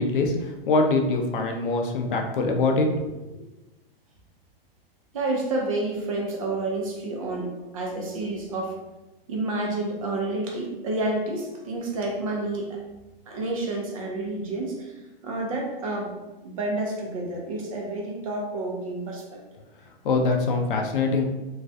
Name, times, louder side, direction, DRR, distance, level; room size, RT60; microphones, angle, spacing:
voice 1, 0.0-2.9 20.0-21.3, left 3 dB, 60° left, 3 dB, 0.5 m, -23 dB
voice 2, 5.1-8.8 9.3-12.8 13.3-14.9 15.2-19.4, right 2 dB, 35° right, -1 dB, 0.4 m, -29 dB
2.3 x 2.1 x 2.6 m, 1.0 s
hypercardioid pair, 165°, 30 cm